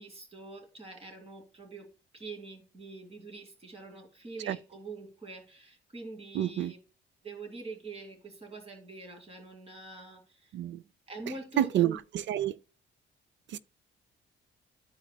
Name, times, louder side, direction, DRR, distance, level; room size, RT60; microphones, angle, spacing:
voice 1, 0.0-6.8 7.2-10.5 11.1-12.0, right 3 dB, 30° right, 2.3 m, -45 dB
voice 2, 6.3-6.7 10.5-10.8 11.6-12.6 13.5-13.6, right 12 dB, 65° right, 0.5 m, -29 dB
13.0 x 4.8 x 2.2 m
cardioid pair, 90°, 20 cm